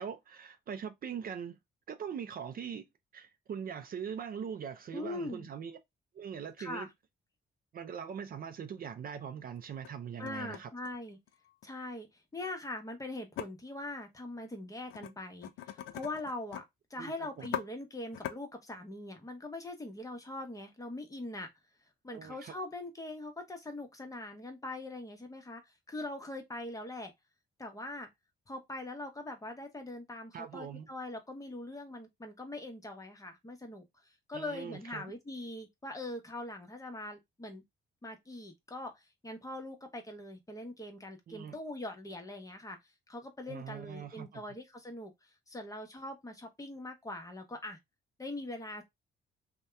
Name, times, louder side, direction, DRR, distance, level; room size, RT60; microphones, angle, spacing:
voice 1, 0.0-1.6 1.9-2.8 3.1-5.8 6.1-6.9 7.7-10.7 17.0-17.5 22.1-22.5 30.3-30.9 34.3-35.1 41.3-41.6 43.5-44.4, right 7 dB, 45° right, 0.4 m, -41 dB
voice 2, 4.9-5.5 6.6-6.9 10.2-11.2 11.6-16.6 16.9-21.5 22.0-27.1 27.6-28.1 28.5-37.6 38.0-42.8 43.1-47.8 48.2-48.8, left 2 dB, 15° left, 0.8 m, -42 dB
sound 1, 8.2-8.3 8.8-8.9 9.6-9.9 10.2-11.7 13.4-13.5 14.9-15.1 15.4-16.6 17.0-17.1 17.4-17.6 18.1-18.4, left 11 dB, 80° left, 0.4 m, -41 dB
2.7 x 2.2 x 3.3 m
cardioid pair, 90°, 20 cm